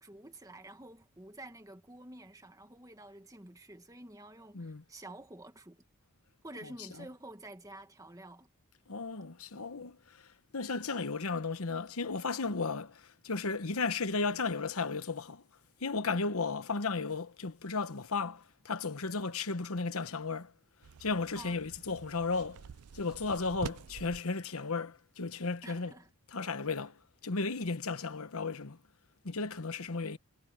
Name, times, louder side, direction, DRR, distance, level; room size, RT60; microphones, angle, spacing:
voice 1, 0.0-5.8 6.4-8.5 21.4-21.6 25.6-26.1, right 1 dB, 15° right, 1.6 m, -49 dB
voice 2, 8.9-15.4 15.8-20.5 21.0-22.6 22.9-25.9 26.3-28.8 29.2-30.2, left 4 dB, 75° left, 1.1 m, -34 dB
sound 1, 20.8-24.2, right 6 dB, 90° right, 0.5 m, -47 dB
head